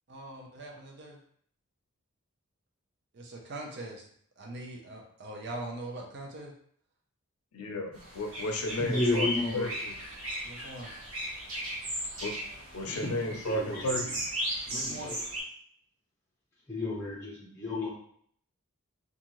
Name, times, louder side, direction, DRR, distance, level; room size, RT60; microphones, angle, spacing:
voice 1, 0.1-1.2 3.1-4.0 4.4-6.5 10.4-10.9 14.7-15.2, right 1 dB, 50° right, 0 dB, 0.5 m, -42 dB
voice 2, 7.5-9.3 9.5-9.9 12.2-12.3 12.7-14.2, left 1 dB, 90° left, 2 dB, 0.5 m, -33 dB
sound 1, 7.9-15.4, equal, 70° right, 1.2 m, -36 dB
voice 3, 8.8-9.7 12.9-14.1 14.7-15.2 16.7-17.9, left 2 dB, 10° left, -6 dB, 0.6 m, -32 dB
2.6 x 2.3 x 2.9 m, 0.62 s
head